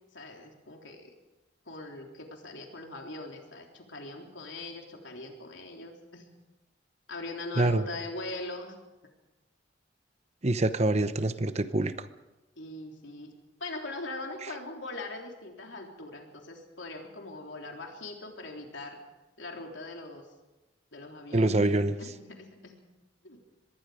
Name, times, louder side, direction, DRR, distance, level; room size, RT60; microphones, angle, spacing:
voice 1, 0.1-1.2 1.7-6.3 7.1-8.8 12.6-13.3 13.6-19.0 19.4-20.3 20.9-21.7 22.0-22.7 23.2-23.4, left 2 dB, 90° left, 2 dB, 3.6 m, -41 dB
voice 2, 10.4-12.1 21.3-22.0, right 2 dB, 35° right, 11 dB, 0.9 m, -25 dB
25.0 x 21.0 x 5.1 m, 1.0 s
head